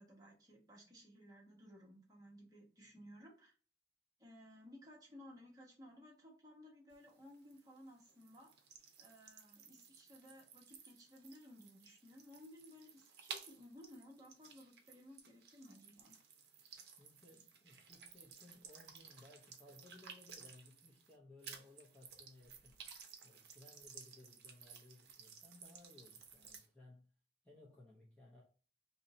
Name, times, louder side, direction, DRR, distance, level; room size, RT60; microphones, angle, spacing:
voice 1, 0.0-3.5 4.2-8.5 9.0-16.1, left 1 dB, 20° right, 1.1 m, -58 dB
sound 1, 6.9-21.1 21.4-26.7, right 6 dB, 60° right, 0.7 m, -56 dB
voice 2, 17.0-22.8 23.2-27.1 27.4-28.4, left 2 dB, 5° left, 0.6 m, -61 dB
2.7 x 2.7 x 4.1 m
head